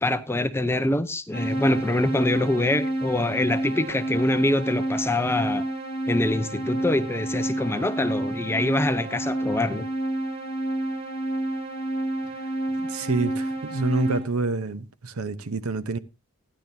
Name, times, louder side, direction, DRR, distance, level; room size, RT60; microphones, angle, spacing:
voice 1, 0.0-5.6 6.1-9.9, left 2 dB, 10° left, 0.6 m, -25 dB
sound 1, 1.3-14.2, right 1 dB, 45° right, 3.0 m, -29 dB
voice 2, 12.9-16.0, right 3 dB, 75° right, 0.8 m, -27 dB
15.5 x 10.5 x 2.7 m
head